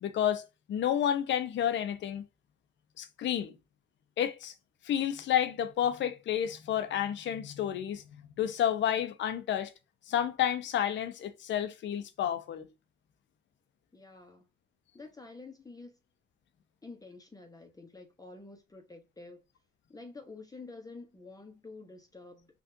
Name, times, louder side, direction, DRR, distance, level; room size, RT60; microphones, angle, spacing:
voice 1, 0.0-2.2 3.0-3.6 4.2-4.5 4.8-9.7 10.1-12.7, left 10 dB, 65° left, 0.6 m, -30 dB
voice 2, 13.9-14.5 14.9-16.0 16.8-19.4 19.9-22.5, left 3 dB, 20° left, 0.8 m, -49 dB
3.6 x 2.5 x 2.6 m
cardioid pair, 90°, 20 cm